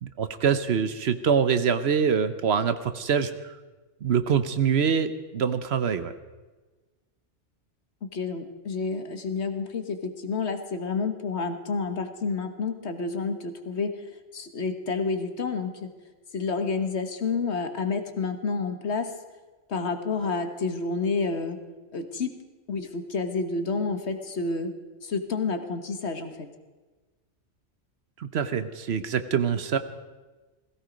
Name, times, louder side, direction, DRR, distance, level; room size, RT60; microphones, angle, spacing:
voice 1, 0.0-3.5 4.0-6.1 28.2-29.8, right 7 dB, 65° right, 11 dB, 1.0 m, -25 dB
voice 2, 8.1-14.0 14.3-15.9 16.3-19.1 19.7-21.6 21.9-22.3 22.7-24.7 25.0-26.5, left 4 dB, 65° left, 7 dB, 1.5 m, -29 dB
17.5 x 16.0 x 5.2 m, 1.2 s
omnidirectional pair, 1.2 m